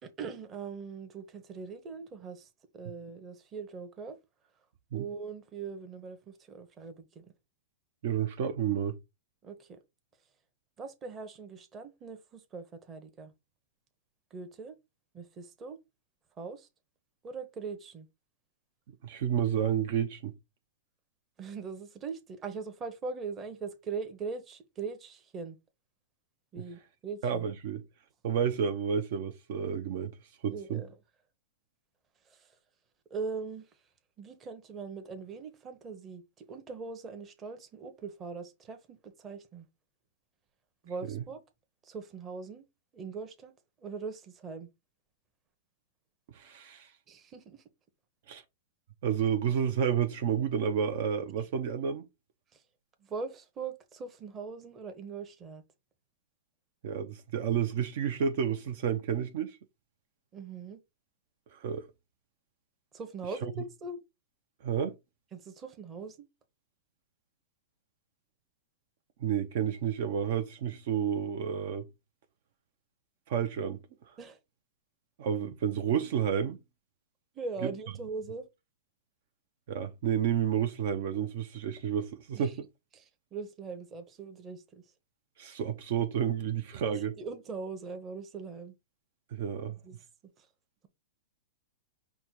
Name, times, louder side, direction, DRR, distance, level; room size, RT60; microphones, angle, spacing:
voice 1, 0.0-4.2 4.9-7.3 9.4-9.8 10.8-13.3 14.3-14.8 15.1-15.8 16.4-16.7 17.2-18.1 21.4-25.6 26.5-27.5 30.5-30.9 32.2-32.6 33.1-33.7 34.2-39.7 40.8-41.4 41.8-42.7 42.9-43.5 43.8-44.7 47.1-47.6 52.5-52.6 53.0-55.6 60.3-60.8 62.9-64.0 65.3-66.3 74.2-74.4 77.3-78.5 82.3-82.6 82.9-84.9 86.7-88.8 89.6-90.5, right 4 dB, 20° right, 0.9 m, -41 dB
voice 2, 8.0-9.0 19.0-20.3 27.2-27.8 28.2-30.1 30.4-30.8 41.1-41.2 46.3-46.9 48.3-48.4 49.0-52.1 56.8-59.6 61.5-61.9 63.4-63.5 64.6-64.9 69.2-71.9 73.3-73.8 75.2-76.6 79.7-82.6 85.4-87.2 89.3-89.8, right 8 dB, 55° right, 0.6 m, -30 dB
5.3 x 2.2 x 4.6 m
hypercardioid pair, 150°, 0 cm